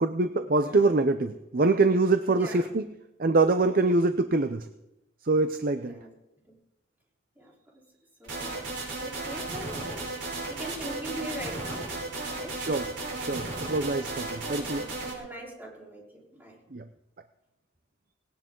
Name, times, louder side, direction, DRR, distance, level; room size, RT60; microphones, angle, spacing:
voice 1, 0.0-2.9 3.2-4.7 5.2-6.0 12.5-12.9 13.2-14.8 16.7-16.8, right 3 dB, 45° right, 9 dB, 0.6 m, -24 dB
voice 2, 0.6-1.0 2.3-2.8 5.8-6.1 6.5-6.6 7.4-7.8 8.2-12.0 12.3-12.6 13.8-16.6, right 1 dB, 10° right, -3 dB, 3.9 m, -43 dB
sound 1, 8.2-15.1, right 2 dB, 70° right, 5.2 m, -35 dB
19.0 x 18.0 x 3.9 m, 0.90 s
head